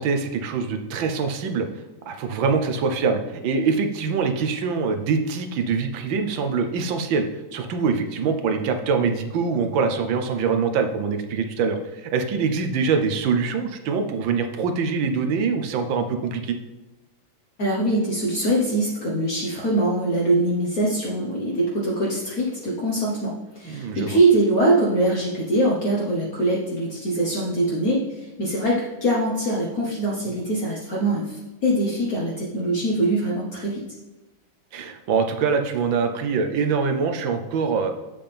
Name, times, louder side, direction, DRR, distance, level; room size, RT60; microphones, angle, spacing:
voice 1, 0.0-1.7 2.1-7.2 7.5-16.6 23.6-24.2 34.7-37.9, right 5 dB, 80° right, 6 dB, 1.6 m, -24 dB
voice 2, 17.6-33.8, right 1 dB, 50° left, -4 dB, 1.5 m, -23 dB
7.7 x 7.0 x 3.4 m, 1.1 s
omnidirectional pair, 2.1 m